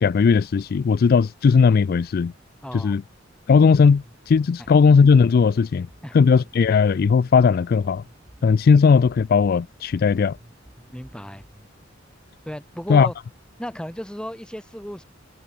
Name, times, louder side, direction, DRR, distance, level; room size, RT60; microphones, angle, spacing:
voice 1, 0.0-2.3 2.8-3.0 3.5-5.9 6.1-8.0 8.4-10.4 12.9-13.1, left 5 dB, 50° left, 0.3 m, -17 dB
voice 2, 2.6-3.0 4.6-4.7 6.0-6.2 10.9-11.5 12.5-13.1 13.6-15.0, equal, 5° left, 2.0 m, -34 dB
sound 1, 3.9-11.9, equal, 20° right, 1.9 m, -50 dB
head